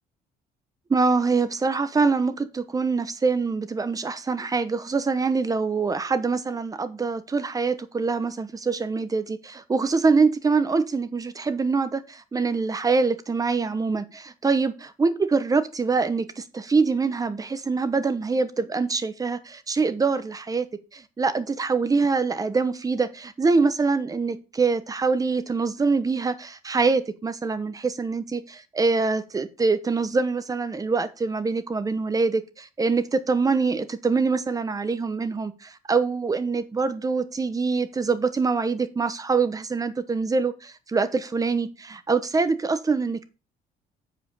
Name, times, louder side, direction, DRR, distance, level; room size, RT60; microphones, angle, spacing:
voice 1, 0.9-14.7 15.0-20.7 20.9-43.2, right 4 dB, 20° right, 1.0 m, -24 dB
7.7 x 5.0 x 5.6 m
cardioid pair, 110°, 17 cm